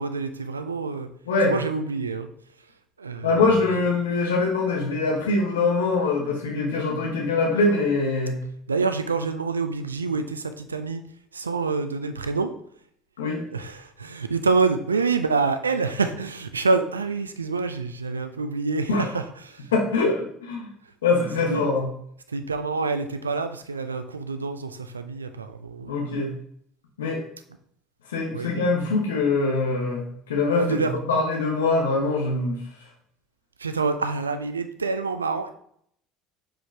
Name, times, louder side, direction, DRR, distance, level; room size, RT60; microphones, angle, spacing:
voice 1, 0.0-1.1 1.5-2.3 3.0-3.3 8.7-11.0 11.3-12.5 13.5-19.6 21.5-21.7 22.3-25.9 28.3-28.5 30.6-31.0 33.6-35.5, right 4 dB, 85° right, 9 dB, 0.4 m, -27 dB
voice 2, 1.2-1.5 3.2-8.4 13.2-13.4 18.9-19.1 19.7-20.7 21.0-21.9 25.9-26.3 27.0-27.2 28.1-32.6, left 3 dB, 75° left, 0 dB, 1.2 m, -23 dB
6.3 x 4.9 x 3.3 m, 0.67 s
figure-of-eight pair, 65°, 0 cm